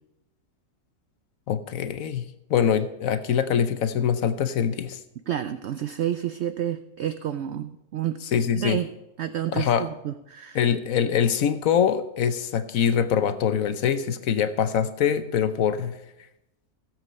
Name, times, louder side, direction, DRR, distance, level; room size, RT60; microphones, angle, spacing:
voice 1, 1.5-5.0 8.3-8.8 9.5-9.9 10.5-15.9, left 8 dB, 65° left, 11 dB, 1.1 m, -24 dB
voice 2, 5.3-8.2 8.6-8.9 9.2-10.6, right 10 dB, 75° right, 11 dB, 0.6 m, -29 dB
16.0 x 7.6 x 5.3 m, 0.90 s
omnidirectional pair, 1.7 m